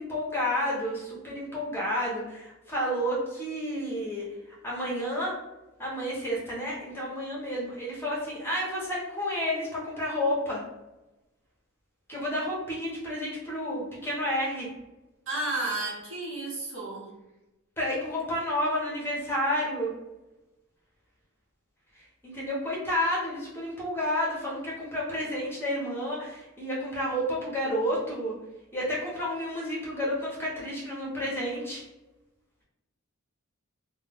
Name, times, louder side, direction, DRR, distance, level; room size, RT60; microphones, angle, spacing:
voice 1, 0.0-4.3 4.6-5.3 5.8-10.6 12.1-14.7 17.8-19.9 22.2-28.3 28.7-31.8, equal, 10° left, -5 dB, 0.6 m, -30 dB
voice 2, 15.3-17.1, right 2 dB, 65° right, -5 dB, 0.9 m, -32 dB
2.2 x 2.1 x 3.3 m, 1.0 s
head